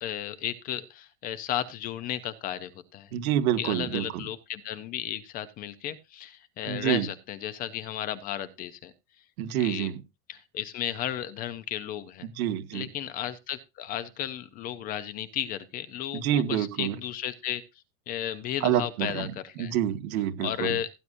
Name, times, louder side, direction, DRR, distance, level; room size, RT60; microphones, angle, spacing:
voice 1, 0.0-3.1 3.6-8.9 9.6-9.9 10.3-12.3 12.7-17.6 18.1-19.8 20.4-20.9, left 11 dB, 20° left, 0.5 m, -34 dB
voice 2, 3.1-4.3 6.7-7.1 9.4-10.0 12.2-12.9 16.1-17.0 18.6-19.3 19.6-20.8, right 11 dB, 80° right, 1.7 m, -27 dB
17.0 x 9.8 x 2.6 m
supercardioid pair, 180°, 42 cm